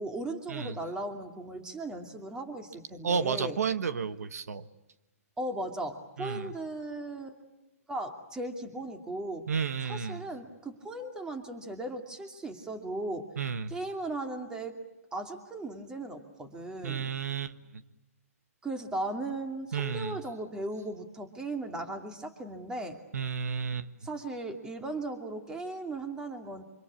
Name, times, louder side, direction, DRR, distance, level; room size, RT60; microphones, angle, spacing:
voice 1, 0.0-3.6 5.4-7.4 7.9-9.5 9.8-13.3 13.7-14.8 15.1-17.1 18.6-23.0 24.0-26.6, right 2 dB, 10° right, 6 dB, 2.6 m, -37 dB
voice 2, 3.0-4.7 6.2-6.5 9.5-10.2 13.4-13.8 16.8-17.8 19.7-20.2 23.1-23.9, right 6 dB, 80° right, 12 dB, 1.4 m, -32 dB
26.5 x 25.5 x 8.5 m, 0.96 s
hypercardioid pair, 150°, 8 cm